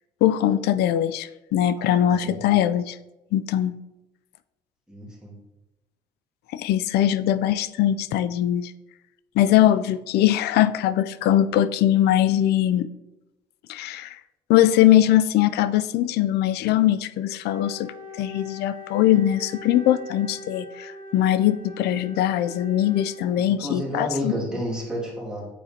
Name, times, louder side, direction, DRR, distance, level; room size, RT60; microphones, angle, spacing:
voice 1, 0.2-3.0 3.3-3.7 6.5-8.7 9.4-12.9 13.7-14.2 14.5-17.9 18.2-24.3, left 12 dB, 75° left, 14 dB, 0.4 m, -21 dB
voice 2, 4.9-5.3 23.4-25.5, equal, 5° right, -6 dB, 2.2 m, -31 dB
Wind instrument woodwind instrument, 17.4-23.8, left 2 dB, 50° right, 1.4 m, -42 dB
9.1 x 4.4 x 2.8 m, 1.0 s
cardioid pair, 110°, 17 cm